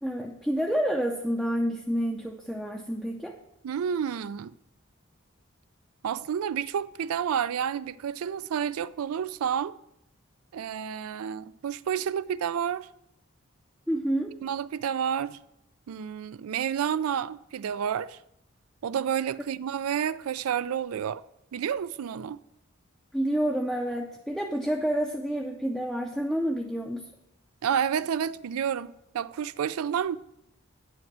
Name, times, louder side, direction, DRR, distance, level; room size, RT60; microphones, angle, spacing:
voice 1, 0.0-3.4 13.9-14.4 23.1-27.0, equal, ahead, 0.5 m, -29 dB
voice 2, 3.6-4.5 6.0-9.7 10.5-12.9 14.4-15.4 15.9-18.2 18.8-21.2 21.5-22.4 27.6-30.2, right 8 dB, 85° right, 0.4 m, -30 dB
9.3 x 5.2 x 6.1 m
head